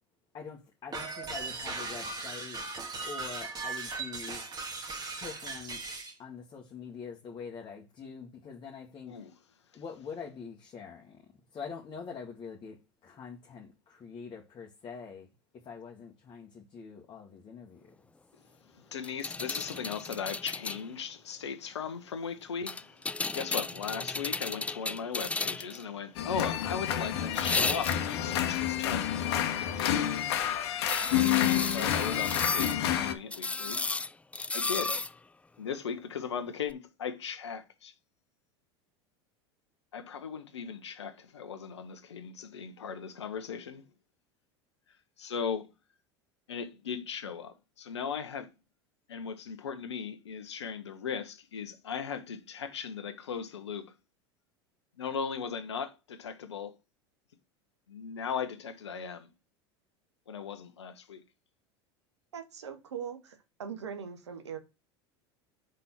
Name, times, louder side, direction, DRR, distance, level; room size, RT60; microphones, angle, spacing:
voice 1, 0.3-2.6 3.0-4.4 5.2-5.8 6.2-9.3 9.7-11.2 11.5-12.8 13.0-15.3 15.5-17.9, left 6 dB, 35° left, 1.5 m, -44 dB
sound 1, 0.9-6.1, right 3 dB, 30° right, 1.8 m, -38 dB
voice 2, 18.7-23.0 23.3-29.1 29.6-30.0 31.4-33.8 34.5-35.0 35.6-37.9 39.9-43.8 45.2-45.7 46.5-48.5 49.1-53.9 55.0-56.7 57.9-59.3 60.3-61.2, left 6 dB, 85° left, 0.9 m, -38 dB
sound 2, 19.0-20.8 22.7-25.8 27.3-28.2 30.9-32.8 33.3-35.1 36.7-36.8, left 3 dB, 10° left, 0.3 m, -34 dB
sound 3, 26.1-33.1, left 10 dB, 70° left, 1.2 m, -29 dB
voice 3, 62.3-64.6, right 7 dB, 85° right, 1.2 m, -41 dB
5.3 x 4.1 x 5.7 m
hypercardioid pair, 85°, 14 cm